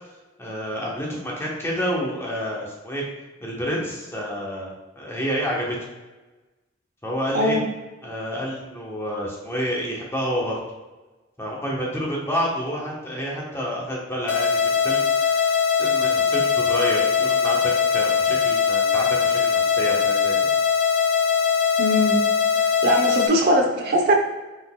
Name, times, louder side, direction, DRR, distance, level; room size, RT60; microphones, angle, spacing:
voice 1, 0.4-3.0 3.4-5.8 7.0-7.6 8.0-10.6 11.4-20.4, equal, 15° left, -3 dB, 1.1 m, -29 dB
sound 1, 14.3-23.3, left 6 dB, 80° left, 0.6 m, -21 dB
voice 2, 21.8-22.2 22.8-24.1, equal, 55° right, 1 dB, 0.8 m, -20 dB
5.9 x 3.9 x 2.3 m, 1.2 s
head